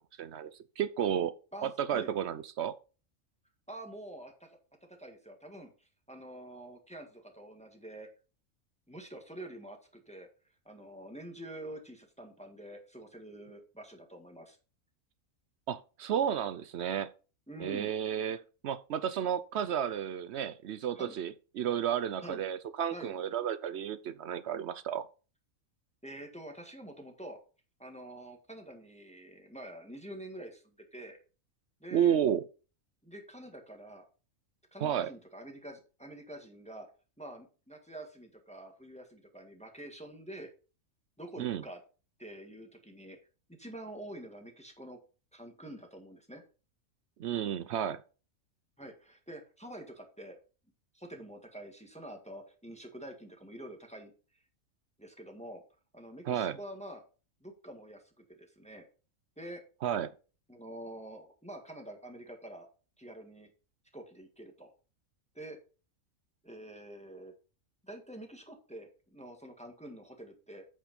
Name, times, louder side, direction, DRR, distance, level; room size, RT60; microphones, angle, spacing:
voice 1, 0.2-0.5 0.8-1.3 1.6-2.7 15.7-17.1 17.6-25.1 31.9-32.4 34.8-35.1 41.4-41.6 47.2-48.0 56.3-56.6 59.8-60.1, right 9 dB, 65° right, 0.8 m, -32 dB
voice 2, 1.5-2.1 3.7-4.5 5.0-8.1 8.9-10.3 10.6-14.6 17.5-17.9 20.9-21.2 22.2-22.4 22.9-23.1 26.0-27.4 27.8-31.2 31.8-32.2 33.0-34.0 34.7-36.9 37.2-40.5 41.2-41.8 42.2-43.2 43.6-45.0 45.3-46.4 48.8-50.4 50.9-54.1 55.0-55.6 55.9-57.0 57.4-58.9 59.4-59.6 60.5-62.7 63.0-63.5 63.9-64.7 65.3-65.6 66.4-67.3 67.8-70.6, right 1 dB, 5° left, 1.6 m, -47 dB
8.4 x 5.5 x 5.3 m
omnidirectional pair, 1.4 m